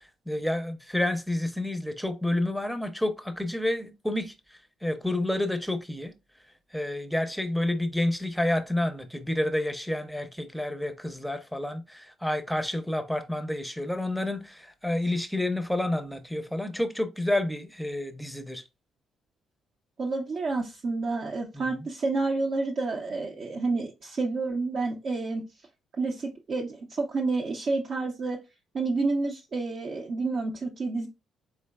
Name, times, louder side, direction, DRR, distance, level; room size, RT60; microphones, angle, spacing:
voice 1, 0.0-4.3 4.8-6.1 6.7-18.6 21.5-21.9, left 1 dB, 5° left, 0.6 m, -29 dB
voice 2, 20.0-25.4 25.9-28.4 28.7-31.1, right 3 dB, 50° right, 0.6 m, -29 dB
3.8 x 3.2 x 2.2 m
cardioid pair, 90°, 0 cm